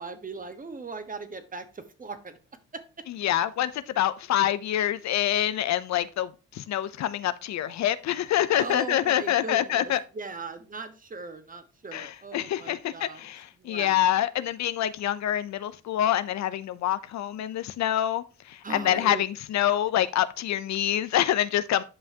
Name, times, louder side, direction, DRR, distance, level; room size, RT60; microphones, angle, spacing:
voice 1, 0.0-2.4 2.7-2.8 8.5-13.2 13.6-14.0 18.6-19.2, right 4 dB, 25° right, 1.2 m, -39 dB
voice 2, 3.1-10.0 11.9-21.8, left 12 dB, 65° left, 0.6 m, -26 dB
10.0 x 5.6 x 2.8 m
cardioid pair, 90°, 30 cm